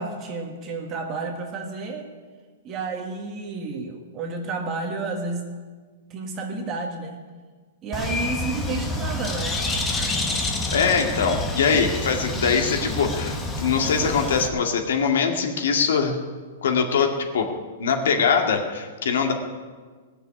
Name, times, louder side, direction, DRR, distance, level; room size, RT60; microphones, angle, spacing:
voice 1, 0.0-2.1 2.6-5.5 6.1-7.2 7.8-9.6, right 3 dB, 20° right, 2 dB, 1.6 m, -31 dB
Bird, 7.9-14.5, left 2 dB, 10° left, 1.0 m, -28 dB
voice 2, 10.7-16.2 16.6-17.5 17.8-19.3, left 5 dB, 75° left, 4 dB, 2.1 m, -22 dB
19.0 x 6.9 x 9.8 m, 1.5 s
hypercardioid pair, 170°, 0 cm